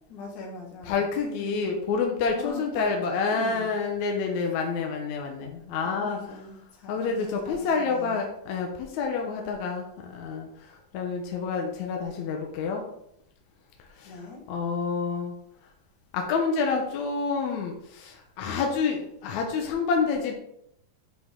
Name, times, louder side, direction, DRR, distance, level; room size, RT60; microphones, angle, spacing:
voice 1, 0.1-1.8 2.3-3.0 3.3-3.7 5.8-8.2 14.0-14.4, left 4 dB, 55° left, 0 dB, 2.8 m, -41 dB
voice 2, 0.9-6.2 6.9-12.8 14.0-15.3 16.1-20.3, left 5 dB, 75° left, 2 dB, 1.7 m, -28 dB
9.6 x 5.9 x 3.6 m, 0.75 s
omnidirectional pair, 4.5 m